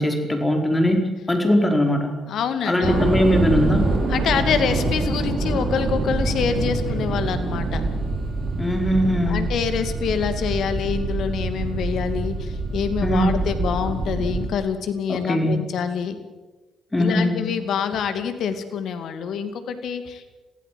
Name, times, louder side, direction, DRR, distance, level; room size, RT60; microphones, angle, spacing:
voice 1, 0.0-2.1 2.7-3.9 8.6-9.4 13.0-13.3 15.1-15.5 16.9-17.4, left 1 dB, 20° left, 4 dB, 4.7 m, -20 dB
voice 2, 2.3-3.2 4.1-7.8 9.3-16.2 17.0-20.3, left 7 dB, 65° left, 9 dB, 2.4 m, -26 dB
sound 1, 2.8-14.5, right 3 dB, 55° right, 5.7 m, -25 dB
22.5 x 16.0 x 7.7 m, 1.2 s
hypercardioid pair, 50°, 0 cm